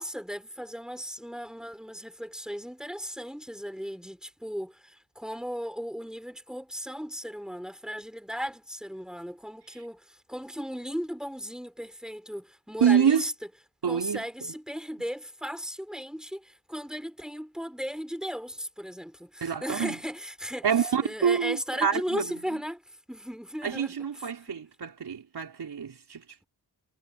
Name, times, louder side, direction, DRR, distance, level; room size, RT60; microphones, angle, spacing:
voice 1, 0.0-13.3 13.8-20.7 21.0-24.6, equal, ahead, 6.0 m, -36 dB
voice 2, 12.8-13.2 13.8-14.2 19.4-20.0 20.6-22.4 23.6-26.4, right 7 dB, 80° right, 4.7 m, -26 dB
cardioid pair, 50°, 39 cm